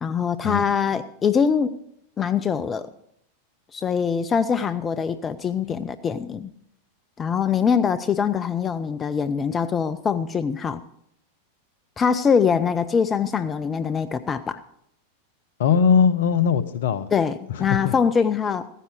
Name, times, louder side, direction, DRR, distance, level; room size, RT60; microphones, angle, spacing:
voice 1, 0.0-1.7 2.2-2.9 3.7-6.5 7.2-10.8 12.0-14.6 17.1-18.7, left 6 dB, 20° left, 12 dB, 0.5 m, -23 dB
voice 2, 15.6-17.1 17.5-17.9, left 6 dB, 55° left, 14 dB, 0.9 m, -20 dB
15.0 x 10.0 x 5.1 m, 0.73 s
figure-of-eight pair, 90°, 0 cm